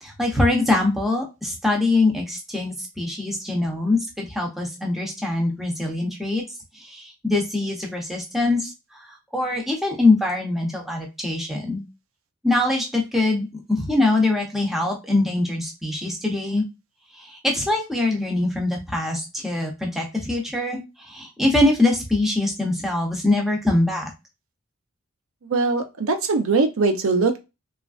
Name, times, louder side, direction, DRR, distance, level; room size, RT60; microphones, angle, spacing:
voice 1, 0.0-6.4 6.7-9.1 9.3-11.8 12.4-16.6 17.1-24.1, left 2 dB, ahead, 0 dB, 0.6 m, -23 dB
voice 2, 25.5-27.4, right 3 dB, 80° right, 7 dB, 0.5 m, -21 dB
3.0 x 2.4 x 2.4 m, 0.25 s
head